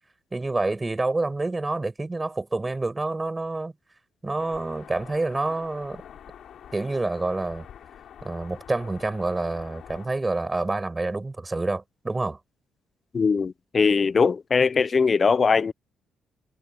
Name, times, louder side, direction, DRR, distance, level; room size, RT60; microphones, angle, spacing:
voice 1, 0.3-3.7 4.2-6.0 6.7-7.7 8.2-12.4, right 2 dB, 20° right, 6.0 m, -28 dB
sound 1, 4.4-10.1, left 9 dB, 65° left, 4.4 m, -46 dB
voice 2, 13.1-15.7, left 5 dB, 35° left, 0.6 m, -21 dB
cardioid pair, 90°, 0 cm